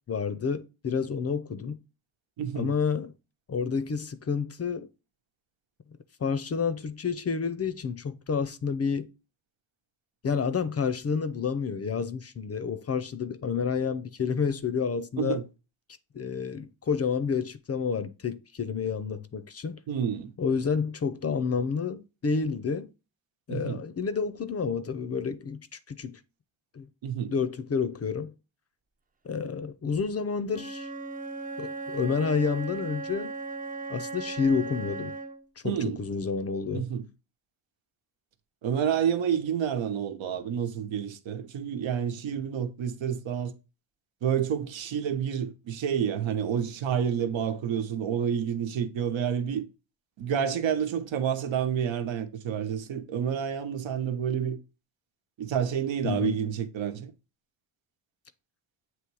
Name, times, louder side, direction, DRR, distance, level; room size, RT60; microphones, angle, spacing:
voice 1, 0.1-1.8 2.5-3.1 3.5-4.9 6.2-9.1 10.2-15.4 16.1-19.8 20.4-22.9 23.5-25.6 25.9-26.2 26.7-26.9 27.3-28.3 29.2-30.9 31.6-33.3 33.9-35.1 35.6-36.9 56.0-56.4, left 5 dB, 35° left, 0.5 m, -29 dB
voice 2, 2.4-2.7 15.2-15.4 19.9-20.3 23.5-23.8 27.0-27.3 35.6-36.0 36.7-37.0 38.6-43.5 44.2-49.6 50.2-54.6 55.4-57.1, right 8 dB, 75° right, 1.1 m, -29 dB
Wind instrument woodwind instrument, 30.5-35.5, right 3 dB, 20° right, 0.5 m, -37 dB
7.7 x 3.1 x 4.7 m
cardioid pair, 125°, 47 cm